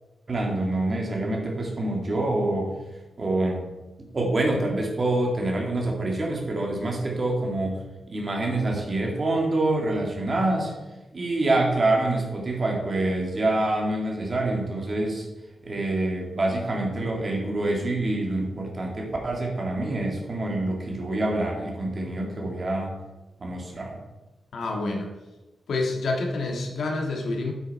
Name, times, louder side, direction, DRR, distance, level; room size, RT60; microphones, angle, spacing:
voice 1, 0.3-2.7 3.2-3.6 4.1-7.8 8.1-10.7 11.1-15.3 15.6-22.9 23.4-24.0, right 2 dB, 35° right, 0 dB, 2.2 m, -26 dB
voice 2, 24.5-25.1 25.7-27.5, left 2 dB, 75° left, 1 dB, 1.7 m, -28 dB
9.5 x 8.4 x 4.2 m, 1.1 s
wide cardioid pair, 150°, 0 cm